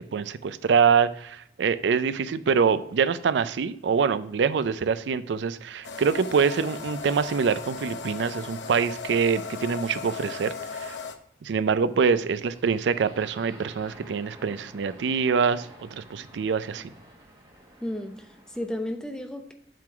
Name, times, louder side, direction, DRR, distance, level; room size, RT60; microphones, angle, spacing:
voice 1, 0.1-11.0 11.4-16.9, right 6 dB, 85° right, 14 dB, 0.4 m, -25 dB
sound 1, 5.8-11.1, left 5 dB, 90° left, 0.7 m, -37 dB
sound 2, 12.5-18.8, right 1 dB, 25° right, 1.3 m, -50 dB
voice 2, 17.8-19.5, left 1 dB, 5° left, 5 dB, 0.7 m, -33 dB
7.5 x 3.8 x 5.9 m, 0.70 s
head